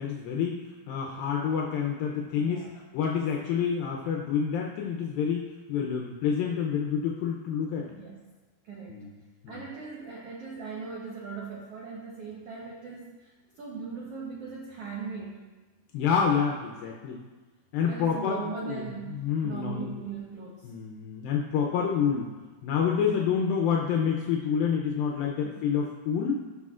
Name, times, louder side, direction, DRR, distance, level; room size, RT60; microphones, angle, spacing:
voice 1, 0.0-2.6 2.9-5.4 5.7-7.9 8.9-9.2 9.4-9.6 15.9-17.2 17.7-18.8 19.1-20.1 20.6-22.3 22.6-26.3, left 7 dB, 80° left, -1 dB, 2.4 m, -28 dB
voice 2, 2.3-2.8 7.9-8.2 8.6-9.0 9.5-15.4 17.9-20.7 25.4-25.7, right 5 dB, 90° right, -3 dB, 1.3 m, -39 dB
16.5 x 6.2 x 2.4 m, 1.3 s
omnidirectional pair, 4.3 m